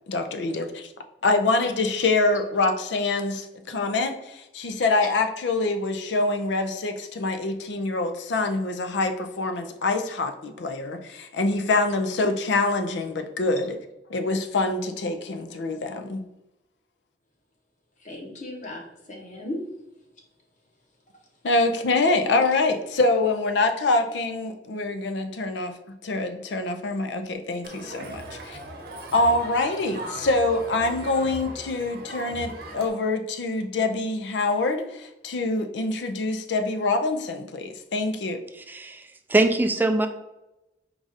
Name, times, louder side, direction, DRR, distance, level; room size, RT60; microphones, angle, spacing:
voice 1, 0.1-0.9 1.2-13.8 14.1-16.2 21.4-25.7 26.0-28.6 29.1-38.4, left 2 dB, 85° left, 6 dB, 0.5 m, -25 dB
voice 2, 18.0-19.6, left 1 dB, 45° left, -1 dB, 1.0 m, -37 dB
Crowd, 27.6-32.9, right 2 dB, 60° right, 0.9 m, -38 dB
voice 3, 38.6-40.1, right 2 dB, 10° right, 6 dB, 0.3 m, -23 dB
4.7 x 2.5 x 4.0 m, 0.96 s
head